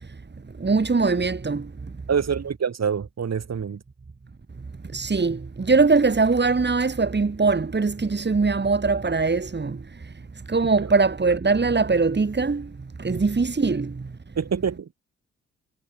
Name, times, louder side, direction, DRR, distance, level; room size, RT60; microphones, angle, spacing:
voice 1, 0.6-1.6 4.9-9.8 10.5-12.7 13.0-13.9, right 4 dB, 30° right, 6.1 m, -21 dB
voice 2, 2.1-3.8 13.1-13.2 14.4-14.9, right 7 dB, 45° right, 7.8 m, -26 dB
figure-of-eight pair, 40°, 37 cm